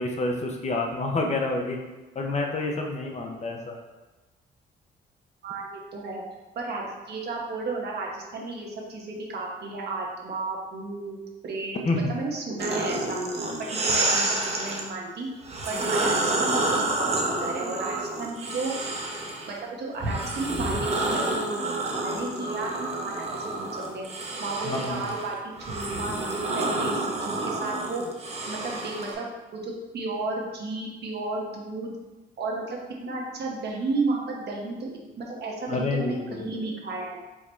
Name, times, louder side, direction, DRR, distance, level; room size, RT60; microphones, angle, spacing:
voice 1, 0.0-1.8 2.2-3.8 11.8-12.1 24.6-25.0 35.7-36.5, left 2 dB, 35° left, 1 dB, 0.7 m, -28 dB
voice 2, 5.4-6.2 6.5-11.2 11.4-11.8 12.1-15.3 15.7-18.7 19.5-20.7 21.0-24.0 24.4-25.4 25.7-28.0 28.5-29.3 29.5-31.9 32.4-32.8 33.0-37.2, right 3 dB, 55° right, -2 dB, 1.0 m, -33 dB
sound 1, 12.6-14.8 15.4-19.5 20.0-29.1, right 2 dB, 30° right, 0.8 m, -29 dB
4.6 x 2.2 x 4.4 m, 1.1 s
cardioid pair, 90°, 20 cm